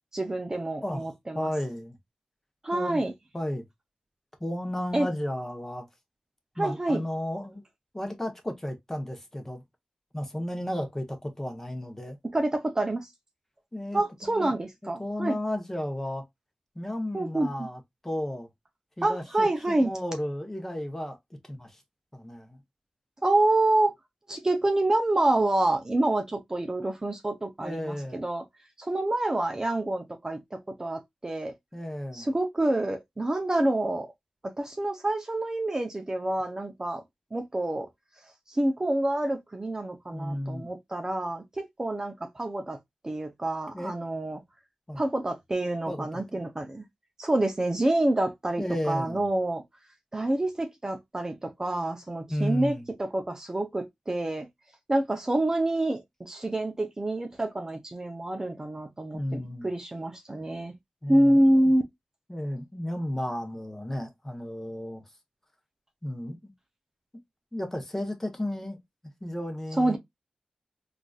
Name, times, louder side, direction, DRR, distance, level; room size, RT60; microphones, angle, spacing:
voice 1, 0.1-1.5 2.6-3.1 4.9-5.1 6.6-7.0 12.3-13.1 13.9-15.4 17.1-17.5 19.0-19.9 23.2-23.9 24.3-28.4 28.8-31.5 32.1-34.1 34.6-37.0 37.3-37.9 38.5-42.8 43.0-44.4 44.9-46.8 47.2-49.6 50.1-54.5 54.9-60.7 61.1-61.8 69.8-70.0, right 1 dB, 25° right, 0.5 m, -27 dB
voice 2, 1.3-2.0 2.7-3.0 3.3-3.7 4.4-5.9 6.6-7.6 7.9-9.6 10.1-12.2 13.7-14.5 15.0-16.2 16.7-18.5 19.0-21.2 21.5-21.8 22.1-22.6 27.6-28.2 31.7-32.3 40.1-40.7 43.7-43.9 44.9-45.1 45.9-46.4 48.6-49.2 52.3-52.9 59.1-59.7 61.0-61.7 62.3-65.0 66.0-66.5 67.5-68.8 69.2-70.0, left 1 dB, 15° left, 0.9 m, -33 dB
3.8 x 2.5 x 2.3 m
wide cardioid pair, 70°, 2 cm